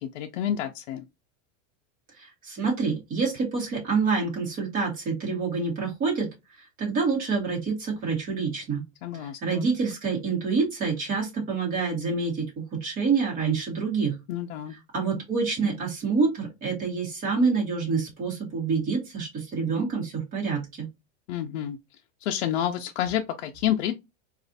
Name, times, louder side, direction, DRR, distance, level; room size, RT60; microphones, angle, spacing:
voice 1, 0.0-1.0 9.0-9.7 14.3-14.8 21.3-21.8 22.2-23.9, left 10 dB, 65° left, 0.5 m, -29 dB
voice 2, 2.2-6.3 6.8-8.8 9.2-12.5 12.8-14.2 14.9-20.9, right 4 dB, 25° right, 1.2 m, -27 dB
4.1 x 2.4 x 2.6 m
supercardioid pair, 180°, 37 cm